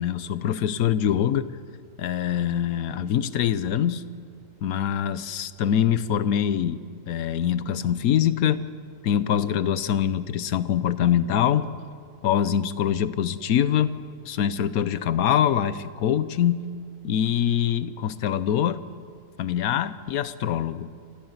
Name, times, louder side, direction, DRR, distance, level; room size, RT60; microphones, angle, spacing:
voice 1, 0.0-1.5 2.0-4.0 4.6-8.6 9.0-11.7 12.2-13.9 14.2-16.6 17.0-18.8 19.4-20.9, left 9 dB, 70° left, 15 dB, 1.2 m, -24 dB
26.5 x 15.0 x 8.1 m, 2.2 s
omnidirectional pair, 1.6 m